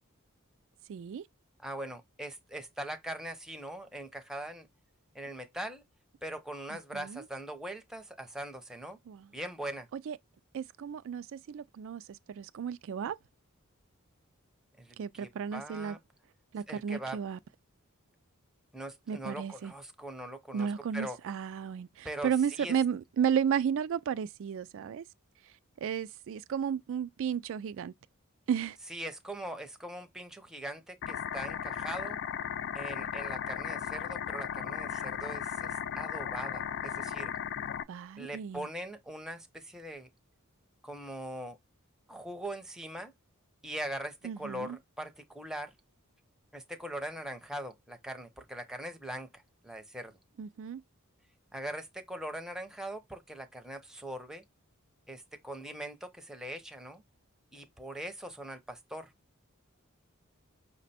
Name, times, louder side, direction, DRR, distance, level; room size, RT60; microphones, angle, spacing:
voice 1, 0.9-1.2 6.7-7.2 9.1-9.3 10.1-10.2 10.5-13.2 15.0-16.0 16.5-17.4 19.1-19.7 20.5-25.0 25.8-27.9 28.5-28.8 37.9-38.7 44.2-44.8 50.4-50.8, right 8 dB, 65° right, 0.3 m, -33 dB
voice 2, 1.6-4.7 5.1-5.8 6.2-9.0 9.3-9.9 14.8-16.0 16.7-17.2 18.7-20.7 20.9-21.2 22.0-22.3 22.6-22.7 28.9-32.2 32.7-37.3 38.2-40.1 40.8-41.6 42.1-43.1 43.6-45.7 46.5-50.1 51.5-54.4 55.1-57.0 57.5-59.1, right 1 dB, 5° right, 0.7 m, -41 dB
sound 1, 31.0-37.8, left 9 dB, 55° left, 0.3 m, -36 dB
5.9 x 2.1 x 4.1 m
head